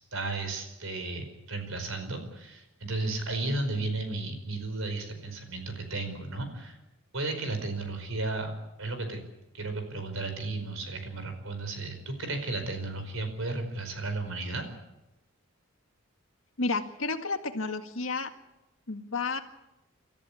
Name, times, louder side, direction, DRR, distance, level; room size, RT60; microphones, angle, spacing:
voice 1, 0.1-6.8 7.1-8.5 8.8-9.2 9.5-14.7, right 2 dB, 70° right, 7 dB, 5.0 m, -34 dB
voice 2, 16.6-18.3 18.9-19.4, left 3 dB, 70° left, 6 dB, 1.9 m, -31 dB
27.5 x 14.5 x 8.5 m, 0.93 s
head